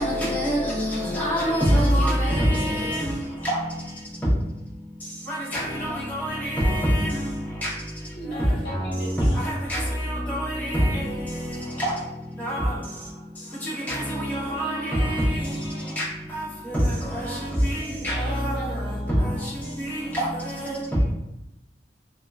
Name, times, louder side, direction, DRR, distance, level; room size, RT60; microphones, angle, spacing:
voice 1, 0.0-2.2 5.5-5.6 9.7-9.8 12.4-12.6 14.5-14.7 16.0-16.1 18.0-18.1, equal, 10° left, -7 dB, 0.7 m, -23 dB
voice 2, 2.5-3.1 5.4-6.0 6.2-6.6 8.1-9.5 14.6-16.0 17.8-18.9, equal, 65° left, -5 dB, 0.9 m, -39 dB
voice 3, 13.7-16.0 17.2-21.1, right 2 dB, 85° right, 0 dB, 0.5 m, -45 dB
2.8 x 2.3 x 2.2 m, 0.91 s
head